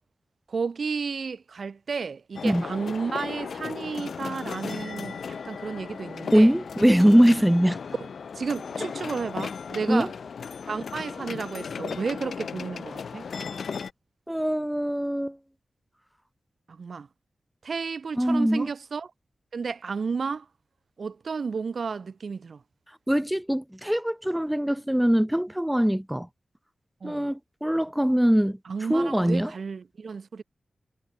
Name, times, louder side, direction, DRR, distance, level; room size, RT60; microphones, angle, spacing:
voice 1, 0.5-6.5 8.0-8.1 8.3-10.1 10.7-13.3 16.7-17.1 17.6-19.1 19.5-20.5 21.0-22.6 27.0-27.3 28.6-30.4, right 5 dB, 55° right, 1.4 m, -32 dB
sound 1, 2.3-13.9, left 6 dB, 75° left, 0.6 m, -36 dB
voice 2, 6.3-7.8 9.9-10.1 14.3-15.4 18.2-18.7 23.1-26.3 27.0-28.6 28.9-29.5, equal, 5° right, 0.6 m, -22 dB
wide cardioid pair, 150°, 0 cm